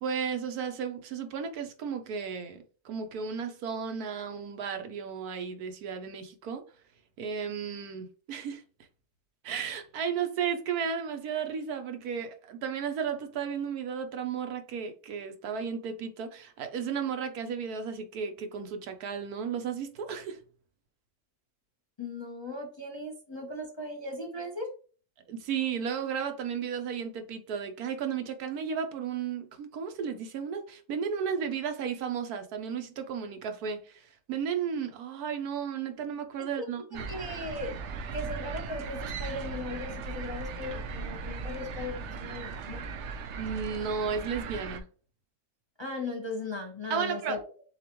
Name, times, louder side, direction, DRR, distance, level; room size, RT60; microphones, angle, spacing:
voice 1, 0.0-6.6 7.2-8.6 9.4-20.4 25.3-37.1 43.4-44.9 46.9-47.4, right 7 dB, 85° right, 1.3 m, -34 dB
voice 2, 22.0-24.7 36.6-36.7 37.1-37.8 38.1-42.9 45.8-47.4, left 2 dB, 25° left, 0.7 m, -37 dB
sound 1, 36.9-44.8, right 5 dB, 65° right, 0.8 m, -38 dB
6.8 x 2.4 x 3.0 m
omnidirectional pair, 1.6 m